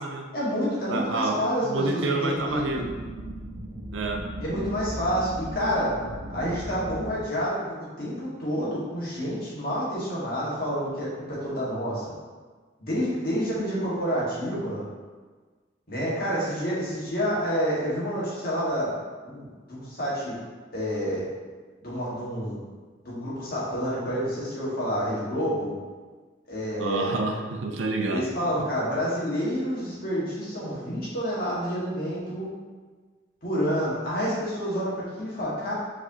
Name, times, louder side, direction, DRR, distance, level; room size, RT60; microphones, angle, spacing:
voice 1, 0.3-2.8 4.4-6.0 6.3-7.6 8.0-12.0 12.8-14.8 15.9-19.0 19.2-20.3 20.7-21.2 21.8-22.6 23.0-25.8 26.5-27.2 28.0-32.5 33.4-35.7, equal, 50° left, -8 dB, 1.5 m, -28 dB
voice 2, 0.9-2.9 3.9-4.3 26.8-28.5, right 2 dB, 80° right, 2 dB, 0.5 m, -29 dB
sound 1, 2.4-7.2, right 1 dB, 15° right, 1.0 m, -37 dB
4.9 x 3.4 x 2.7 m, 1.4 s
head